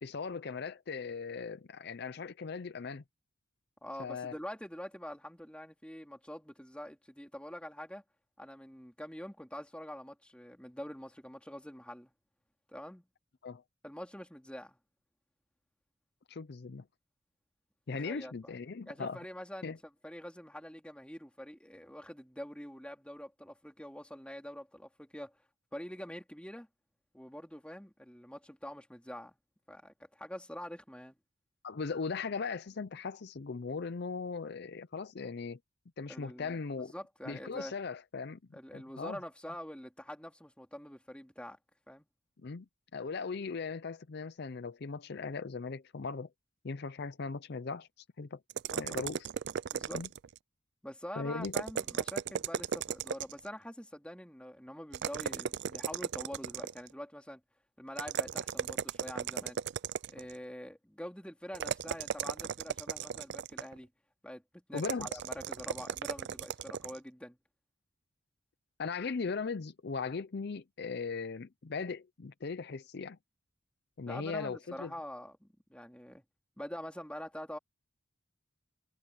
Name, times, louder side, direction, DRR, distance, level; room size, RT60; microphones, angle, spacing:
voice 1, 0.0-3.0 4.0-4.3 13.4-13.6 16.3-16.8 17.9-19.2 19.6-19.8 31.6-35.6 36.0-36.9 37.3-38.4 38.7-39.2 42.4-42.7 42.9-46.3 46.6-48.4 48.8-49.3 49.9-50.1 51.2-51.5 64.7-65.1 68.8-73.2 74.0-74.9, left 4 dB, 50° left, 0.5 m, -38 dB
voice 2, 3.8-8.0 8.4-12.1 12.7-13.0 13.8-14.8 17.9-18.5 18.9-19.8 20.0-25.3 25.7-26.7 27.1-29.3 29.7-31.2 36.1-37.7 38.5-41.6 41.9-42.1 48.7-49.0 49.7-50.0 50.8-57.4 57.8-59.6 60.1-63.9 64.2-67.4 74.1-76.2 76.6-77.6, equal, 5° left, 3.4 m, -45 dB
sound 1, 48.5-50.4 51.4-53.5 54.9-56.9 58.0-60.3 61.5-63.8 64.8-67.0, right 7 dB, 55° right, 0.4 m, -36 dB
head